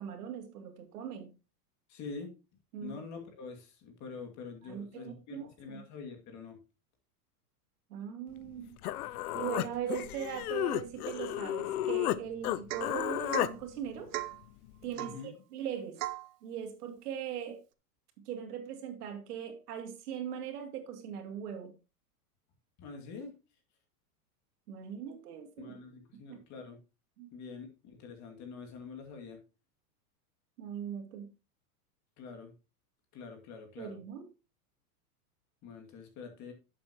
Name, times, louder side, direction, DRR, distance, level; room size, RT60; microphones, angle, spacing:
voice 1, 0.0-1.3 2.7-3.0 4.6-5.8 7.9-8.7 9.3-14.1 14.8-16.0 16.4-17.6 18.3-21.7 24.7-25.7 26.3-26.4 27.2-27.3 30.6-31.3 33.8-34.3, right 9 dB, 75° right, 5 dB, 2.6 m, -40 dB
voice 2, 1.9-2.3 2.8-6.6 14.9-15.3 22.8-23.3 25.6-26.8 27.3-29.4 32.2-32.5 33.1-34.0 35.6-36.5, left 4 dB, 35° left, 3 dB, 2.4 m, -45 dB
Human voice, 8.5-8.6 8.8-12.2 12.4-13.5, left 14 dB, 70° left, 0.7 m, -33 dB
Domestic sounds home sounds / Chink clink / Drip, 12.7-13.0 13.3-13.6 14.1-14.4 15.0-15.2 16.0-16.3, right 16 dB, 55° right, 0.8 m, -38 dB
11.0 x 7.6 x 3.0 m, 0.29 s
supercardioid pair, 140°, 46 cm